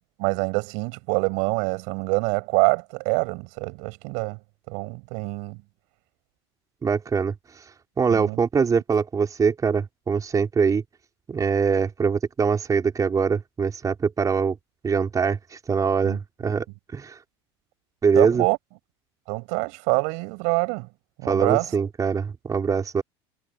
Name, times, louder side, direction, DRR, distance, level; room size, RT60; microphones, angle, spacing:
voice 1, 0.2-4.4 4.7-5.6 8.1-8.4 16.0-16.5 18.1-18.6 19.3-20.9 21.2-21.7, right 35 dB, 65° right, 8.0 m, -25 dB
voice 2, 6.8-7.3 8.0-10.8 11.3-14.6 14.8-16.6 16.9-17.2 18.0-18.4 21.3-23.0, right 6 dB, 25° right, 5.2 m, -23 dB
hypercardioid pair, 100°, 14 cm